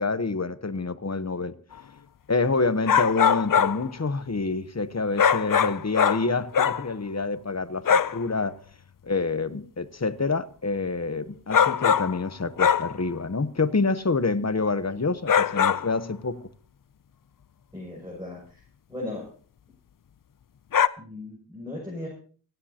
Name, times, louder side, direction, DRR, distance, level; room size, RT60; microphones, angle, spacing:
voice 1, 0.0-1.6 2.3-8.6 9.0-16.4, left 3 dB, 45° left, 1.0 m, -27 dB
sound 1, 2.9-3.9 5.2-6.8 7.9-8.2 11.5-12.3 12.6-13.0 15.3-15.9 20.7-20.9, left 7 dB, 60° left, 0.5 m, -21 dB
voice 2, 17.7-18.6 18.9-19.2 21.0-22.1, left 2 dB, 10° right, 6.6 m, -37 dB
29.5 x 10.0 x 2.9 m
wide cardioid pair, 45°, 37 cm